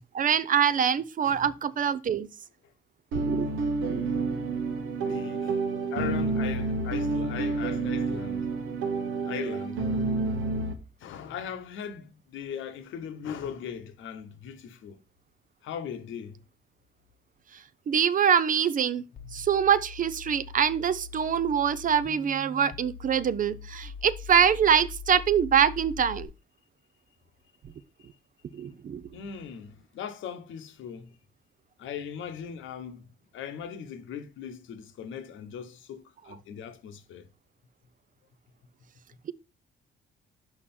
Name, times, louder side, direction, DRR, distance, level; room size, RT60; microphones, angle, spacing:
voice 1, 0.1-2.3 3.1-3.5 3.9-4.0 17.9-19.0 19.3-26.3 28.5-29.0, right 8 dB, 45° right, 0.4 m, -24 dB
sound 1, 3.1-10.7, right 3 dB, 85° right, 1.1 m, -29 dB
voice 2, 5.1-5.6 5.9-8.5 9.3-9.8 11.0-15.0 15.6-16.4 29.1-31.2 31.8-33.0 33.3-37.2, left 8 dB, 80° left, 1.0 m, -39 dB
sound 2, 19.2-26.3, left 6 dB, 45° left, 0.8 m, -43 dB
5.8 x 4.8 x 4.2 m
cardioid pair, 90°, 20 cm